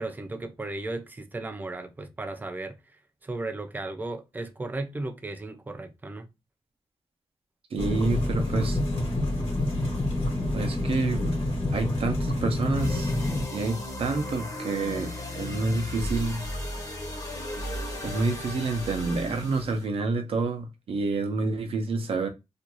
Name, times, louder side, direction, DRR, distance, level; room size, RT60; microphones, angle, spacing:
voice 1, 0.0-2.8 3.2-6.3, right 2 dB, 15° right, 0.3 m, -35 dB
voice 2, 7.7-8.8 10.5-11.3 11.7-13.1 13.5-16.5 18.0-22.3, right 3 dB, 70° right, 0.6 m, -28 dB
sound 1, 7.8-13.5, left 1 dB, 70° left, 1.1 m, -27 dB
sound 2, 12.7-19.8, left 1 dB, 35° left, 0.7 m, -35 dB
2.5 x 2.2 x 2.9 m
wide cardioid pair, 165°, 10 cm